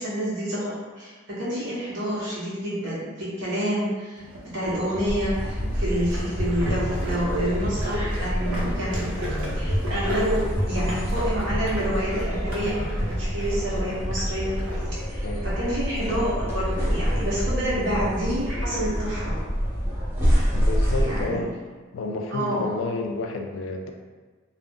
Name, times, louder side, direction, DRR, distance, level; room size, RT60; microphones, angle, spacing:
voice 1, 0.0-4.2 4.5-14.6 14.9-19.4 21.0-21.4 22.3-22.7, equal, 60° right, -8 dB, 0.9 m, -28 dB
sound 1, 4.2-14.9, equal, 85° right, 0.7 m, -33 dB
sound 2, 5.1-21.2, equal, 10° right, 0.5 m, -27 dB
voice 2, 20.5-21.5 21.9-23.9, left 2 dB, 65° left, 4 dB, 0.3 m, -30 dB
2.4 x 2.0 x 3.4 m, 1.4 s
head